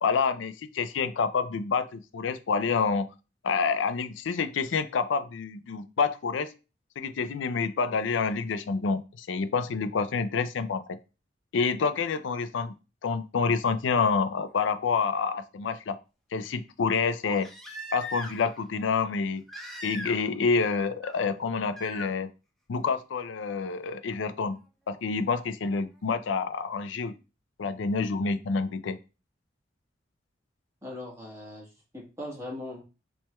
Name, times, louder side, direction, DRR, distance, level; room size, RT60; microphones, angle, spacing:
voice 1, 0.0-3.1 3.4-6.5 7.0-11.0 11.5-12.7 13.0-16.0 16.3-17.5 17.9-19.4 19.8-22.3 22.7-24.6 24.9-27.1 27.6-29.0, left 5 dB, 90° left, 12 dB, 0.4 m, -28 dB
Crying sobbing, 14.5-14.6 17.2-18.6 19.5-20.3 20.6-21.1 21.7-22.1 23.7-23.8, equal, ahead, 0.8 m, -40 dB
voice 2, 30.8-32.8, left 1 dB, 15° right, -2 dB, 1.4 m, -40 dB
5.9 x 3.2 x 2.2 m, 0.31 s
head